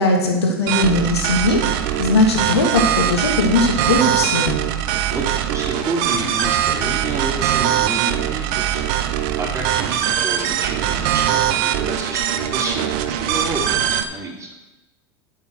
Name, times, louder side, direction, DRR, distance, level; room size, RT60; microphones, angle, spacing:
voice 1, 0.0-1.6 2.0-4.6, left 2 dB, 90° left, 1 dB, 2.5 m, -18 dB
sound 1, 0.7-14.0, right 11 dB, 60° right, 0.9 m, -21 dB
voice 2, 5.5-8.8 9.4-14.5, right 2 dB, 25° right, -2 dB, 3.7 m, -29 dB
9.6 x 7.4 x 6.5 m, 0.96 s
hypercardioid pair, 95°, 13 cm